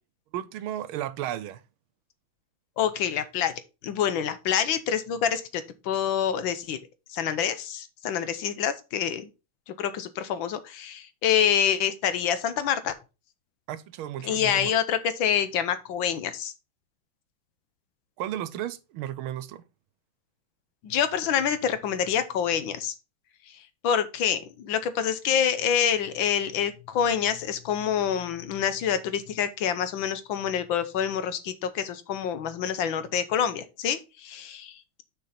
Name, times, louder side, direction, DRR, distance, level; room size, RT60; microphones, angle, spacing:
voice 1, 0.3-1.6 13.7-14.7 18.2-19.6, right 12 dB, 90° right, 1.5 m, -34 dB
voice 2, 2.8-3.5 3.8-6.8 7.1-9.3 9.8-12.9 14.2-16.5 20.8-22.9 23.8-35.0, left 8 dB, 75° left, 1.6 m, -27 dB
6.6 x 5.5 x 4.2 m
omnidirectional pair, 2.2 m